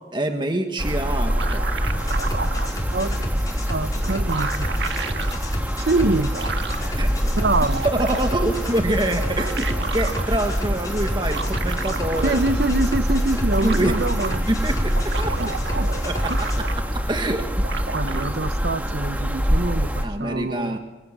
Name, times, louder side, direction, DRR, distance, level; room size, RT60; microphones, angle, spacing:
voice 1, 0.1-1.6 7.0-7.1 7.8-12.4 13.6-14.0 14.5-15.3 16.0-16.5 16.8-17.7 20.0-20.8, right 1 dB, 25° right, 1.5 m, -25 dB
sound 1, 0.8-20.1, equal, 10° right, 2.0 m, -25 dB
sound 2, 1.0-2.7 3.7-3.8 4.0-5.4 6.1-6.9 7.4-8.4 9.1-10.3 11.2-12.6 12.9-13.0 13.2-14.4 14.8-17.0 17.3-18.3, right 4 dB, 85° right, 1.7 m, -32 dB
sound 3, 1.8-16.6, left 1 dB, 20° left, 4.8 m, -32 dB
voice 2, 2.6-3.3 3.7-4.7 5.8-6.3 7.4-7.8 12.2-14.5 15.4-15.9 16.3-16.4 17.9-20.8, right 2 dB, 65° right, 0.9 m, -25 dB
26.5 x 23.5 x 7.5 m
head